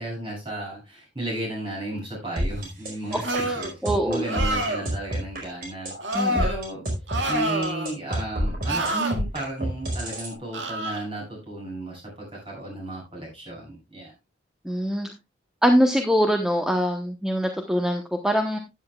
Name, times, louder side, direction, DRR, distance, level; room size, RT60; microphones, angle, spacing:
voice 1, 0.0-6.8 7.3-14.1, right 1 dB, 30° right, -1 dB, 7.2 m, -34 dB
sound 1, 2.4-10.3, equal, 50° right, 4.6 m, -28 dB
voice 2, 3.1-3.5 3.8-4.3 6.1-6.4 14.6-15.1 15.6-18.6, equal, 5° right, 4 dB, 0.9 m, -23 dB
sound 2, 3.2-3.7 4.2-4.9 6.0-6.5 7.1-7.9 8.6-9.1 10.5-11.0, right 1 dB, 75° right, 1.9 m, -27 dB
13.0 x 10.0 x 2.3 m, 0.24 s
head